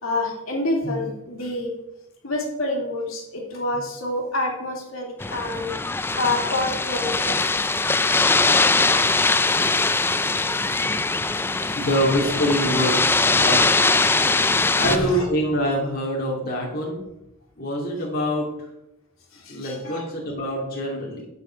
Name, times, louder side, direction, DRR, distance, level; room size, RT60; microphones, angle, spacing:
voice 1, 0.0-1.7 2.2-5.7 6.1-7.4 8.0-8.1 8.8-9.2 11.6-11.8 14.2-14.5 14.8-15.3 19.4-20.0, left 2 dB, 70° left, 0 dB, 2.8 m, -28 dB
sound 1, 5.2-15.0, left 3 dB, 10° left, 0.3 m, -21 dB
voice 2, 11.8-13.7 14.8-17.0 17.6-18.5 19.5-21.3, equal, 45° left, -3 dB, 2.5 m, -25 dB
10.5 x 6.7 x 5.7 m, 0.90 s
head